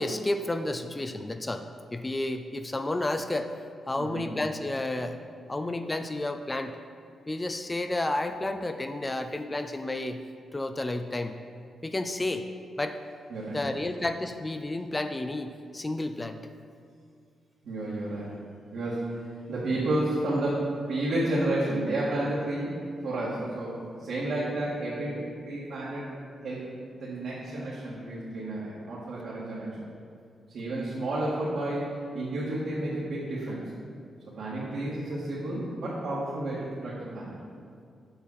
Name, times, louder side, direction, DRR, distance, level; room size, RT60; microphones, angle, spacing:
voice 1, 0.0-1.6 1.9-3.5 3.9-5.2 5.5-6.8 7.3-10.2 10.5-11.4 11.8-12.5 12.8-13.0 13.5-16.4, left 2 dB, 20° left, 8 dB, 0.4 m, -31 dB
voice 2, 13.3-13.7 17.6-18.3 18.7-19.1 19.5-22.8 23.0-26.1 26.4-26.7 27.0-29.8 30.5-31.9 32.1-33.6 34.3-37.4, right 1 dB, 70° right, -9 dB, 2.1 m, -31 dB
7.8 x 6.0 x 5.7 m, 2.3 s
cardioid pair, 90°, 0 cm